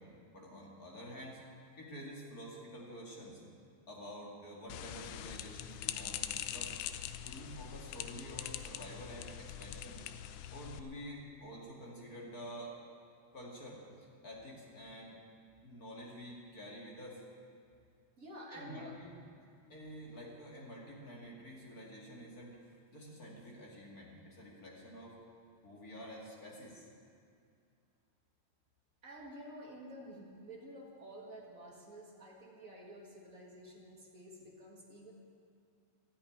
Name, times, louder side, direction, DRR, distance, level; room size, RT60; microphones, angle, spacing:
voice 1, 0.3-1.4 1.8-3.4 3.9-6.7 7.2-10.0 10.5-12.8 13.3-13.8 14.2-15.2 15.6-17.2 18.5-19.1 19.7-22.6 22.9-25.2 25.6-26.9, equal, 30° left, -3 dB, 2.0 m, -49 dB
sound 1, 4.7-10.8, left 11 dB, 80° left, 2.0 m, -43 dB
voice 2, 18.2-18.9 29.0-35.1, equal, 40° right, -2 dB, 1.2 m, -50 dB
13.0 x 8.7 x 10.0 m, 2.3 s
omnidirectional pair, 4.1 m